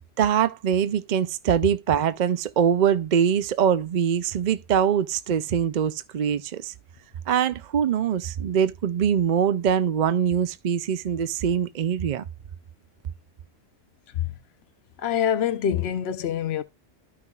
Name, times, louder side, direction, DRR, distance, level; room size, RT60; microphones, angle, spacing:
voice 1, 0.2-6.7 7.3-12.2, right 8 dB, 55° right, 0.6 m, -23 dB
voice 2, 15.0-16.6, left 9 dB, 65° left, 1.0 m, -25 dB
13.5 x 6.0 x 2.3 m
omnidirectional pair, 1.2 m